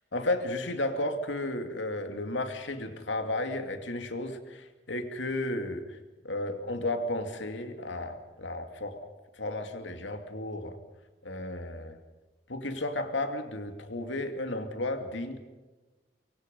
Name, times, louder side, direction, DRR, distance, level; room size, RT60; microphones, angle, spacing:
voice 1, 0.1-6.0 6.2-10.8 11.2-12.0 12.5-15.4, left 2 dB, 85° left, 6 dB, 2.6 m, -33 dB
24.5 x 24.0 x 5.4 m, 1.2 s
head